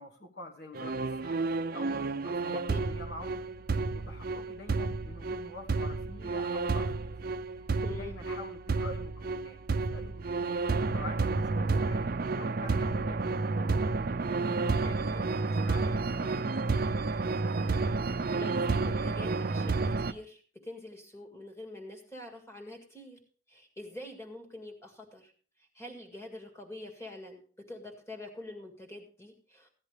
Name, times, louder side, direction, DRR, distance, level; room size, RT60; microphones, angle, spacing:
voice 1, 0.0-1.4 1.7-2.6 2.9-3.5 3.9-7.1 7.6-7.7 8.0-10.6 10.9-13.4 14.2-17.0, left 2 dB, 55° left, 1 dB, 1.4 m, -47 dB
sound 1, 0.8-20.1, right 3 dB, 45° right, 0.5 m, -31 dB
voice 2, 2.5-2.9 7.8-8.2 18.4-23.2 23.5-25.3 25.6-29.7, left 1 dB, 15° left, 3 dB, 2.0 m, -45 dB
15.5 x 10.5 x 3.3 m, 0.41 s
head